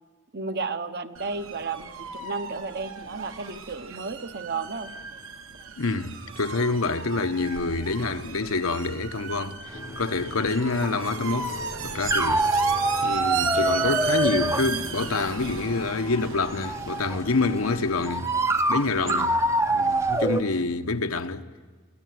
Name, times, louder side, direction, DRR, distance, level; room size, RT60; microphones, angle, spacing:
voice 1, 0.3-5.0 19.0-19.3 20.2-20.3, right 4 dB, 50° right, 1.1 m, -33 dB
sound 1, 1.1-20.6, right 6 dB, 70° right, 1.6 m, -36 dB
voice 2, 5.8-11.6 11.8-12.5 13.0-18.3 18.7-19.3 19.7-21.4, left 3 dB, 80° left, 1.1 m, -27 dB
sound 2, 9.7-18.1, left 2 dB, 40° left, 0.9 m, -41 dB
sound 3, 9.7-20.4, right 2 dB, 15° right, 0.7 m, -26 dB
24.0 x 17.0 x 9.5 m
head